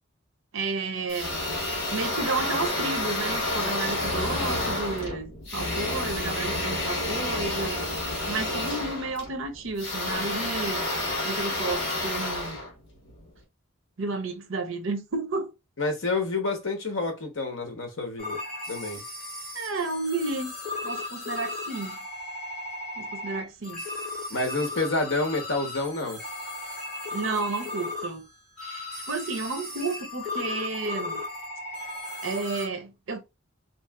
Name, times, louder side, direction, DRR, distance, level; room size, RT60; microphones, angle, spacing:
voice 1, 0.5-1.4 1.9-7.9 8.3-10.9 11.2-12.6 14.0-15.5 19.5-20.5 20.8-22.0 23.0-23.8 27.1-28.3 28.6-31.2 32.2-33.2, right 3 dB, 70° right, 0.6 m, -32 dB
sound 1, 1.1-13.3, left 2 dB, 55° left, 1.3 m, -30 dB
voice 2, 15.8-18.4 18.7-19.0 24.3-26.2, left 2 dB, 70° left, 0.9 m, -28 dB
sound 2, 18.2-32.7, left 2 dB, 5° left, 1.5 m, -36 dB
3.1 x 2.6 x 2.3 m
head